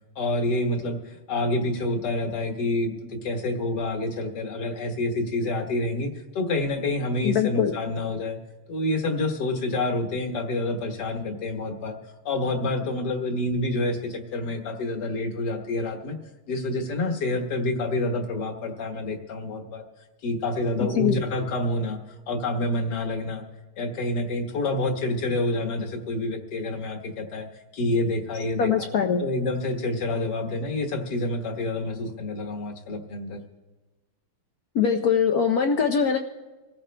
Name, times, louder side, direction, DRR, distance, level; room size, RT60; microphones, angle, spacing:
voice 1, 0.2-8.4 8.7-12.0 12.3-16.2 16.5-19.8 20.2-22.0 22.3-23.5 23.8-27.5 27.7-28.9 29.2-33.4, left 2 dB, 55° left, 3 dB, 1.8 m, -28 dB
voice 2, 7.2-7.7 21.0-21.2 28.6-29.2 34.7-36.2, left 7 dB, 80° left, 4 dB, 0.8 m, -22 dB
26.0 x 14.5 x 2.2 m, 1.2 s
omnidirectional pair, 2.4 m